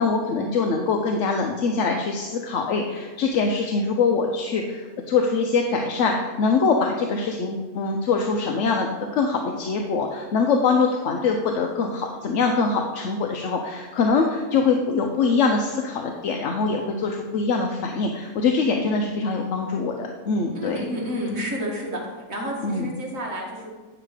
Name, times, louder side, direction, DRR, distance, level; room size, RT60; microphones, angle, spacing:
voice 1, 0.0-20.8 22.6-22.9, left 4 dB, 60° left, 2 dB, 0.9 m, -23 dB
voice 2, 20.5-22.0 22.3-23.7, equal, 65° right, -2 dB, 2.1 m, -30 dB
9.0 x 5.9 x 4.9 m, 1.3 s
omnidirectional pair, 1.6 m